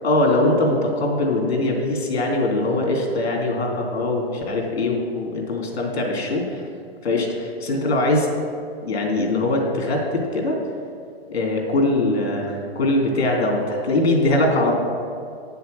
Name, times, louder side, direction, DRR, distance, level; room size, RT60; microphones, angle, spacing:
voice 1, 0.0-6.7 7.0-8.3 8.8-10.6 11.3-14.7, left 2 dB, 90° left, 1 dB, 2.8 m, -22 dB
8.3 x 6.9 x 6.7 m, 2.3 s
hypercardioid pair, 135°, 31 cm